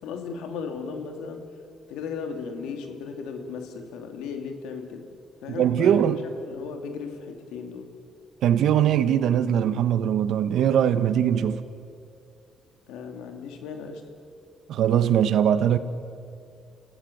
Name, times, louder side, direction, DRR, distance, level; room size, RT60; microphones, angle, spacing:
voice 1, 0.0-1.5 1.9-5.1 5.4-6.1 6.4-7.9 12.9-14.1, left 5 dB, 90° left, 2.7 m, -36 dB
voice 2, 5.6-6.2 8.4-11.6 14.7-15.8, right 9 dB, 75° right, 1.1 m, -21 dB
28.0 x 17.0 x 9.2 m
cardioid pair, 70°, 0 cm